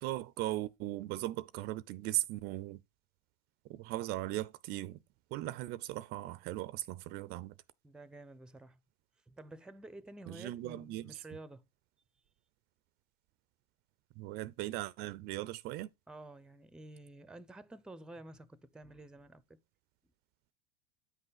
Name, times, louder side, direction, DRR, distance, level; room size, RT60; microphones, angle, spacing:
voice 1, 0.0-2.8 3.7-5.0 5.3-7.5 10.3-11.1 14.2-15.9, right 16 dB, 55° right, 0.5 m, -38 dB
voice 2, 7.8-8.8 9.3-11.7 16.1-19.6, right 2 dB, 5° right, 0.6 m, -51 dB
9.5 x 5.5 x 3.9 m
hypercardioid pair, 95°, 20 cm